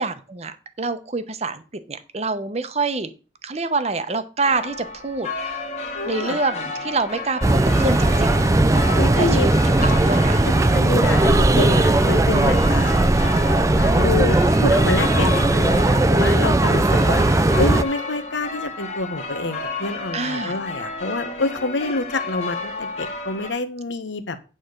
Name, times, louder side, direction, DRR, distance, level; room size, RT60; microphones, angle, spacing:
voice 1, 0.0-1.6 1.9-3.1 3.4-5.3 6.0-8.5 9.2-10.4 15.2-15.5 20.1-20.6, right 3 dB, 35° right, 10 dB, 0.8 m, -26 dB
sound 1, 4.4-23.5, left 3 dB, 35° left, 1.3 m, -32 dB
voice 2, 5.9-6.4 9.0-9.5 10.4-12.9 13.7-17.2 17.6-24.4, left 3 dB, 90° left, 11 dB, 1.0 m, -27 dB
sound 2, 7.4-17.8, right 2 dB, 15° right, 0.4 m, -17 dB
8.9 x 4.3 x 6.5 m, 0.34 s
head